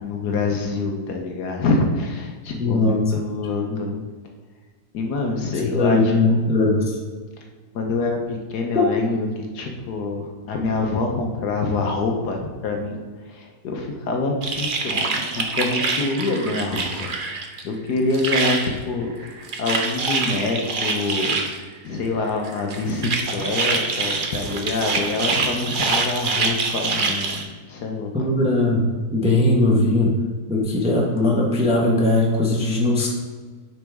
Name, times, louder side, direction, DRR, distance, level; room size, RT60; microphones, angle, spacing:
voice 1, 0.0-3.9 4.9-6.4 7.4-7.5 7.7-13.0 13.3-21.4 21.8-28.1, left 3 dB, 65° left, 2 dB, 1.3 m, -26 dB
voice 2, 2.6-3.0 3.7-3.8 5.6-7.0 8.7-8.9 25.6-25.8 28.1-28.9 29.1-30.1 30.5-33.1, left 2 dB, 5° right, -2 dB, 0.8 m, -19 dB
sound 1, 14.4-17.6 17.9-18.7 19.2-21.5 22.4-27.4, right 4 dB, 65° right, 0.5 m, -25 dB
9.4 x 5.1 x 3.5 m, 1.4 s
omnidirectional pair, 2.0 m